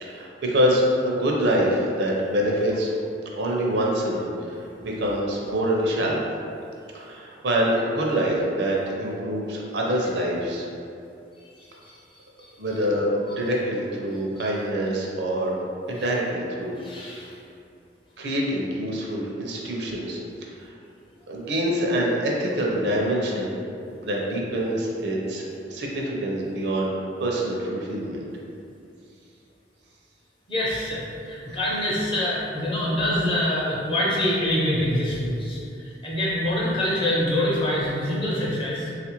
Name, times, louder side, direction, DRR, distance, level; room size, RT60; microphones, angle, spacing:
voice 1, 0.0-2.9 3.4-6.3 6.9-10.7 12.6-15.5 15.9-17.2 18.2-20.7 21.3-23.5 24.0-28.3, equal, 70° right, -2 dB, 0.5 m, -25 dB
voice 2, 16.8-17.3 30.5-38.9, left 1 dB, 30° left, -6 dB, 0.7 m, -25 dB
3.6 x 2.4 x 2.9 m, 2.6 s
head